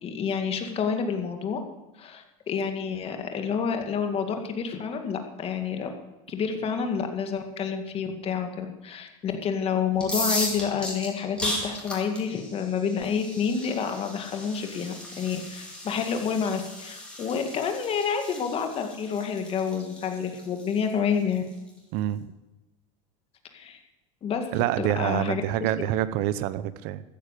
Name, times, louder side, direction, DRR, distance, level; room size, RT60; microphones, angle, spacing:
voice 1, 0.0-1.6 2.0-5.9 6.3-21.4 23.5-23.8 24.2-24.5 24.8-25.7, left 6 dB, 35° left, 5 dB, 2.1 m, -29 dB
sound 1, 9.9-21.7, left 1 dB, 5° left, 4.3 m, -36 dB
voice 2, 21.9-22.3 24.5-27.0, right 13 dB, 60° right, 15 dB, 0.8 m, -27 dB
14.0 x 10.0 x 8.4 m, 1.0 s
supercardioid pair, 130°, 17 cm